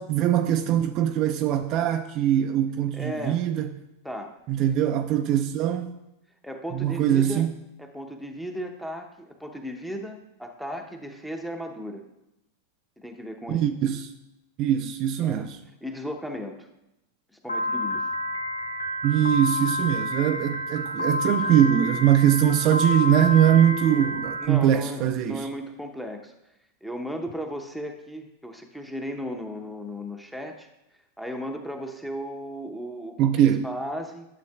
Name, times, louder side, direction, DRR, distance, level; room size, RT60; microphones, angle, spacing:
voice 1, 0.0-3.7 4.5-5.9 6.7-7.5 13.5-14.1 14.6-15.6 19.0-25.5 33.2-33.7, right 10 dB, 40° right, 0.4 m, -22 dB
voice 2, 2.9-3.4 4.0-4.4 6.4-7.4 7.8-12.0 13.0-13.7 15.2-15.5 15.8-16.7 17.4-18.1 24.4-26.3 26.8-30.7 31.2-34.3, equal, ahead, 0.8 m, -35 dB
Piano, 17.5-24.5, left 1 dB, 75° left, 1.0 m, -29 dB
12.0 x 7.1 x 2.3 m
figure-of-eight pair, 90°, 0 cm